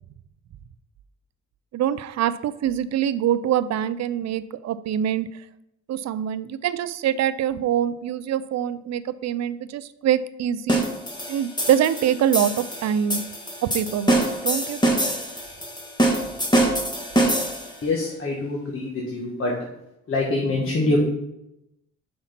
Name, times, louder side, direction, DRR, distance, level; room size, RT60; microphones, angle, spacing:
voice 1, 1.7-5.3 5.9-10.8 11.3-13.2 13.6-15.0, right 10 dB, 60° right, 15 dB, 0.5 m, -24 dB
sound 1, 10.7-17.8, right 1 dB, 15° left, 1.6 m, -24 dB
voice 2, 17.8-19.6 20.1-21.0, left 2 dB, 45° left, -2 dB, 1.5 m, -25 dB
5.8 x 4.2 x 5.8 m, 0.86 s
cardioid pair, 90°, 30 cm